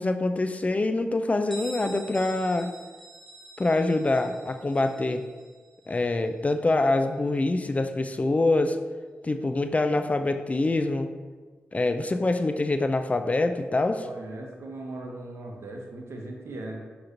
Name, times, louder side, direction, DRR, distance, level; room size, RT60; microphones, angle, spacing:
voice 1, 0.0-2.7 3.6-5.2 5.9-8.8 9.2-11.1 11.7-14.0, left 2 dB, 30° left, 8 dB, 0.3 m, -25 dB
Bell, 1.5-7.0, right 1 dB, ahead, 0.7 m, -47 dB
voice 2, 14.0-16.8, right 2 dB, 70° right, 1 dB, 0.7 m, -38 dB
6.2 x 3.0 x 2.6 m, 1.4 s
cardioid pair, 50°, 5 cm